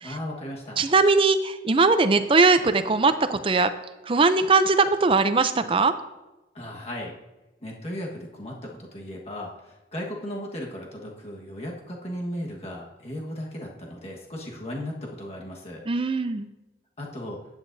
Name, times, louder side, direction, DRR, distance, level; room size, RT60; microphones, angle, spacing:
voice 1, 0.0-0.8 6.5-7.1 7.6-15.8 17.0-17.4, left 1 dB, 35° left, -2 dB, 1.4 m, -36 dB
voice 2, 0.8-3.7 4.1-5.9 15.9-16.5, right 3 dB, 30° right, 10 dB, 0.5 m, -20 dB
15.0 x 9.1 x 2.7 m, 1.1 s
head